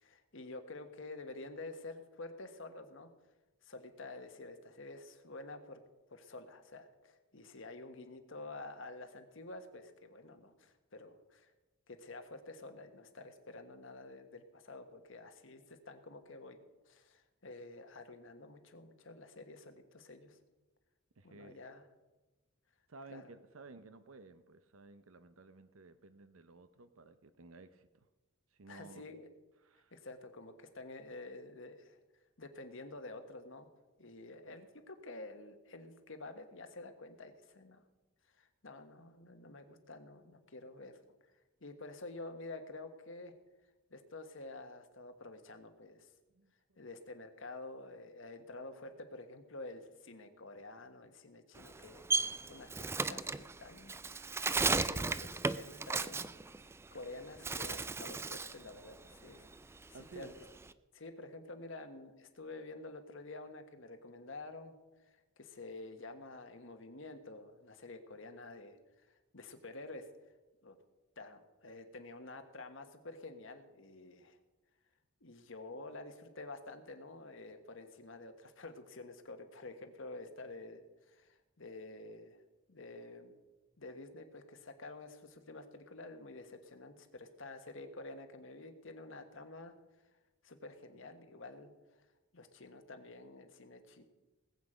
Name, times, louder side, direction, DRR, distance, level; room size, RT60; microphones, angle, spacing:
voice 1, 0.0-3.1 3.6-5.8 6.1-11.5 11.9-16.6 16.8-20.4 21.2-21.9 23.1-23.3 28.7-29.3 29.9-32.0 32.4-33.7 34.0-37.8 38.3-41.0 41.6-43.3 43.9-46.1 46.8-54.4 54.6-56.3 56.9-59.4 59.9-60.4 60.9-64.7 65.1-70.1 70.6-70.8 71.2-74.4 75.2-82.4 82.7-83.4 83.8-89.7 90.4-91.7 92.3-94.0, left 2 dB, 70° left, 7 dB, 1.4 m, -49 dB
voice 2, 21.2-21.6 22.9-28.1 28.5-29.0 29.6-29.9 46.3-46.5 59.9-60.3, right 3 dB, 85° right, 11 dB, 0.7 m, -55 dB
Bird, 51.6-57.0 57.4-58.6 59.0-60.7, right 3 dB, 10° right, 0.3 m, -35 dB
20.0 x 8.3 x 5.0 m, 1.2 s
head